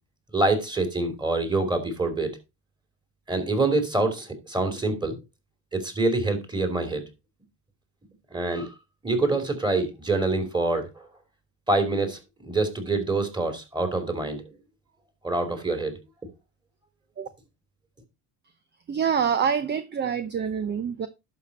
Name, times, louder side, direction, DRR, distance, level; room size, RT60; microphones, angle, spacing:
voice 1, 0.3-2.3 3.3-5.2 5.7-7.0 8.3-8.7 9.0-11.1 11.7-14.4 15.2-15.9, right 2 dB, 10° right, 3.0 m, -26 dB
voice 2, 18.9-21.1, right 7 dB, 25° right, 0.7 m, -26 dB
11.5 x 6.0 x 4.1 m
cardioid pair, 125°, 40 cm